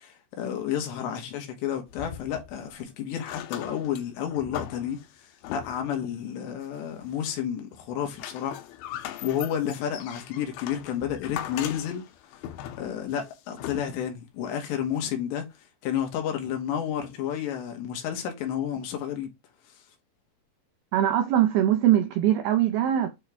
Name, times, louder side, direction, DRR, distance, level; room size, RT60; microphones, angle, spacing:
voice 1, 0.0-5.0 5.5-8.6 8.9-12.0 12.3-12.4 12.8-15.5 15.8-19.3, left 9 dB, 75° left, 3.5 m, -31 dB
sound 1, 1.9-2.8 3.2-6.0 6.6-7.4 7.7-14.2 15.0-15.1, left 11 dB, 90° left, 3.3 m, -40 dB
voice 2, 20.9-23.2, right 11 dB, 85° right, 2.2 m, -22 dB
9.0 x 3.1 x 3.5 m
omnidirectional pair, 5.3 m